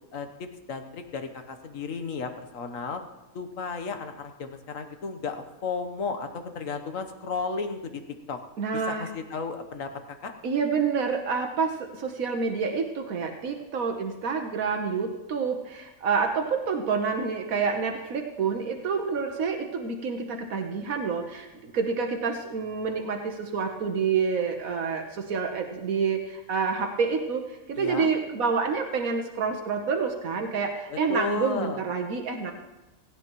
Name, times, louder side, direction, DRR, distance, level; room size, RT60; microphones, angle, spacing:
voice 1, 0.1-3.0 3.3-8.0 8.3-8.4 8.7-9.9 10.2-10.3 27.8-28.1 30.9-31.8, left 4 dB, 70° left, 7 dB, 1.4 m, -33 dB
voice 2, 8.6-9.1 10.4-32.5, right 5 dB, 85° right, 3 dB, 1.5 m, -28 dB
17.0 x 16.5 x 3.1 m, 1.0 s
omnidirectional pair, 1.4 m